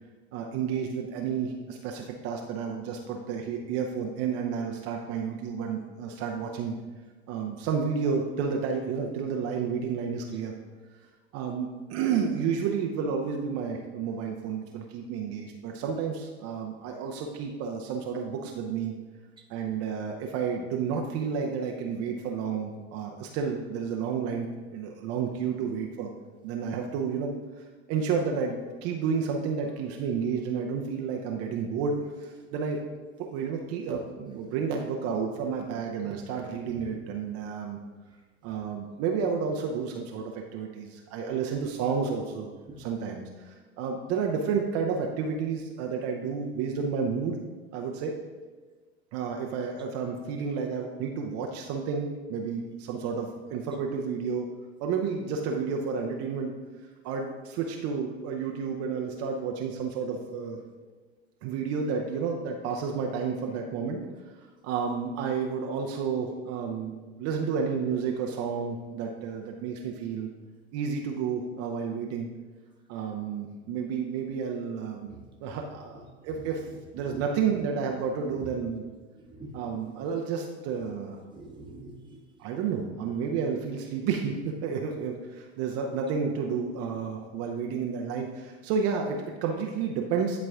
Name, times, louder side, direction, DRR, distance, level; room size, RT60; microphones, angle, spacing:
voice 1, 0.3-6.8 7.3-10.5 11.3-18.9 19.5-26.1 26.4-27.3 27.9-32.8 33.2-37.8 38.4-47.4 47.7-48.1 49.1-54.5 54.8-56.6 57.0-60.6 61.4-64.0 64.6-70.3 70.7-72.3 72.9-75.1 75.4-78.8 79.5-81.2 82.4-90.4, right 6 dB, 50° right, 2 dB, 0.7 m, -31 dB
voice 2, 36.6-37.1 42.7-42.8 75.1-75.6 75.9-76.0 77.0-77.3 78.2-78.5 79.2-79.7 81.3-82.2, right 2 dB, 15° right, -1 dB, 1.0 m, -45 dB
10.0 x 4.2 x 2.4 m, 1.3 s
hypercardioid pair, 85°, 33 cm